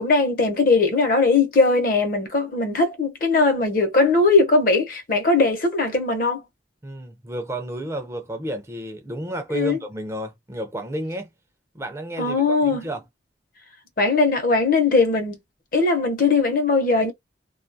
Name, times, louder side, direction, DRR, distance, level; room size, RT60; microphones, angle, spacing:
voice 1, 0.0-6.4 9.5-9.8 12.2-12.8 14.0-15.4 15.7-17.1, left 3 dB, 50° left, 0.7 m, -19 dB
voice 2, 6.8-11.3 11.7-13.0, right 1 dB, 15° right, 0.4 m, -31 dB
2.3 x 2.3 x 2.6 m
head